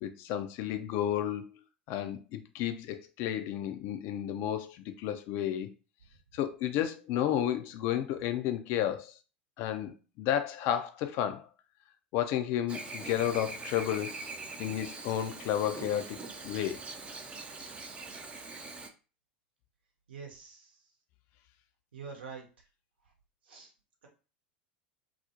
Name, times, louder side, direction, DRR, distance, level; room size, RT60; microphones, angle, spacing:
voice 1, 0.0-1.5 1.9-5.7 6.3-9.1 9.6-11.5 12.1-14.2 14.6-16.8, left 11 dB, 50° left, 0.4 m, -32 dB
Chirp tweet / Buzz, 12.7-18.9, right 3 dB, 20° right, 0.4 m, -43 dB
voice 2, 20.1-20.8 21.9-22.4 23.5-23.7, right 5 dB, 75° right, 0.8 m, -45 dB
2.4 x 2.0 x 2.8 m
figure-of-eight pair, 85°, 6 cm